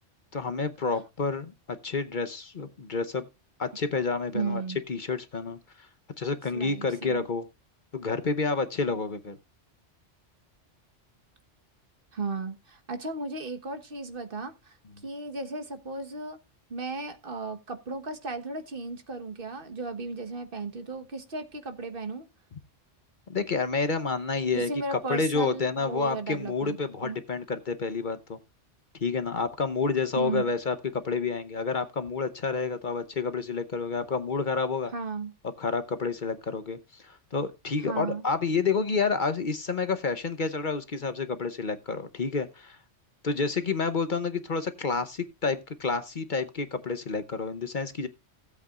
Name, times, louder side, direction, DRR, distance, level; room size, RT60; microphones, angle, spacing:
voice 1, 0.3-3.2 3.6-4.6 4.9-5.9 6.2-7.5 7.9-9.4 23.3-28.4 29.0-34.9 35.6-42.8 43.2-48.1, left 4 dB, 45° left, 1.0 m, -29 dB
voice 2, 4.3-4.8 6.5-7.2 12.1-14.8 15.0-16.4 16.7-22.3 24.5-26.8 27.0-27.2 30.2-30.4 34.9-35.3 37.8-38.2, right 3 dB, 50° right, 1.5 m, -35 dB
16.5 x 8.3 x 2.4 m
omnidirectional pair, 1.2 m